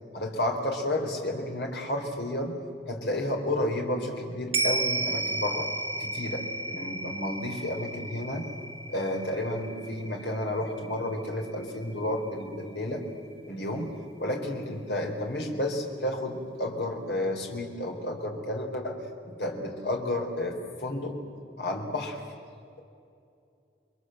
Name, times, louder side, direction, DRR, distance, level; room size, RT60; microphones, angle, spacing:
voice 1, 0.1-2.6 2.9-5.7 6.0-8.5 8.9-13.0 13.4-19.0 19.2-21.2 21.6-22.2, left 1 dB, 75° left, 2 dB, 4.2 m, -31 dB
sound 1, 4.5-13.1 13.4-13.5, right 3 dB, 35° right, 1.7 m, -34 dB
30.0 x 23.0 x 8.0 m, 2.5 s
head